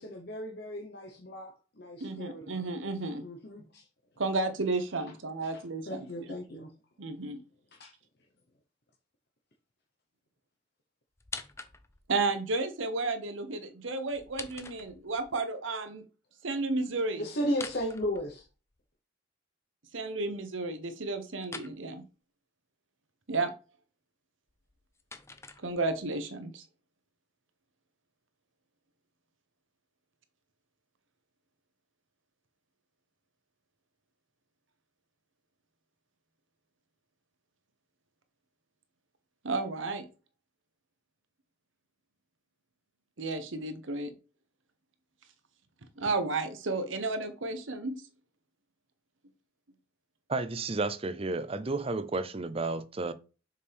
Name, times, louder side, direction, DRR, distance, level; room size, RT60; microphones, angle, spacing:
voice 1, 0.0-2.6 3.2-3.9 5.4-6.7 7.7-7.9 17.2-18.5, equal, 55° left, 1.1 m, -36 dB
voice 2, 2.0-3.2 4.2-6.1 7.0-7.4 12.1-16.0 16.4-17.2 19.9-22.0 23.3-23.5 25.6-26.6 39.4-40.1 43.2-44.1 46.0-48.0, right 3 dB, 80° right, 1.0 m, -32 dB
sound 1, 11.2-12.1 14.1-15.3 17.5-18.8 21.4-21.8 24.5-26.1, left 4 dB, 15° left, 0.6 m, -45 dB
voice 3, 50.3-53.1, right 3 dB, 30° right, 0.5 m, -32 dB
6.8 x 5.2 x 3.5 m
head